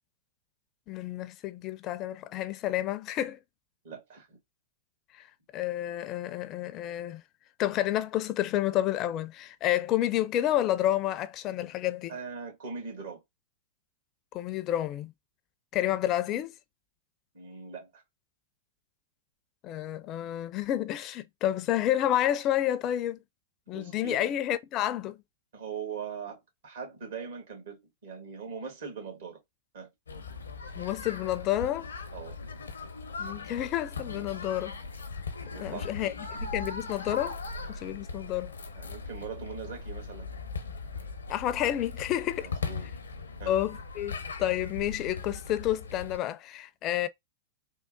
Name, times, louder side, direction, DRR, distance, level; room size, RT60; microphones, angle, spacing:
voice 1, 0.9-3.4 5.1-5.3 5.5-7.2 7.6-12.2 14.3-15.1 15.7-16.5 19.6-23.2 23.7-25.2 30.8-31.9 33.2-34.8 35.6-36.1 36.4-37.4 37.7-38.5 41.3-42.5 43.5-47.1, left 12 dB, 40° left, 0.4 m, -30 dB
voice 2, 3.8-4.4 12.1-13.2 17.3-18.0 23.7-24.3 25.5-29.4 29.7-29.9 32.1-32.4 35.5-35.9 38.8-40.3 42.4-42.9 43.4-43.6, right 6 dB, 70° right, 1.9 m, -41 dB
sound 1, 30.1-46.2, left 4 dB, 90° left, 0.6 m, -39 dB
3.6 x 2.1 x 2.2 m
hypercardioid pair, 105°, 0 cm